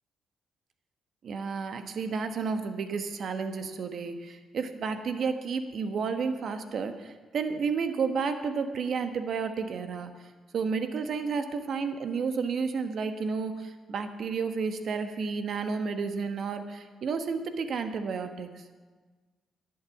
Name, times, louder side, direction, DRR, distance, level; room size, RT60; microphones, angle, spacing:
voice 1, 1.2-10.1 10.5-18.5, right 5 dB, 60° right, 8 dB, 1.2 m, -31 dB
11.0 x 8.8 x 8.3 m, 1.4 s
cardioid pair, 80°, 0 cm